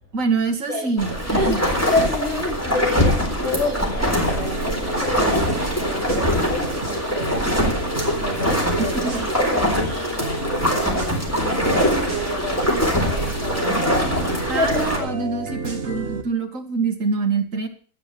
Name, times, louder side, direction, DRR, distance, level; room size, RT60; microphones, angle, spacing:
voice 1, 0.1-1.6 8.8-9.3 14.5-17.7, right 4 dB, 60° right, 6 dB, 2.0 m, -25 dB
voice 2, 0.7-13.9 14.4-15.1, left 2 dB, 50° left, -2 dB, 3.7 m, -29 dB
sound 1, 1.0-15.0, equal, 10° left, 3.7 m, -23 dB
sound 2, 4.2-9.6 10.2-16.2, right 4 dB, 40° right, 1.8 m, -32 dB
12.5 x 9.0 x 6.7 m, 0.44 s
omnidirectional pair, 1.6 m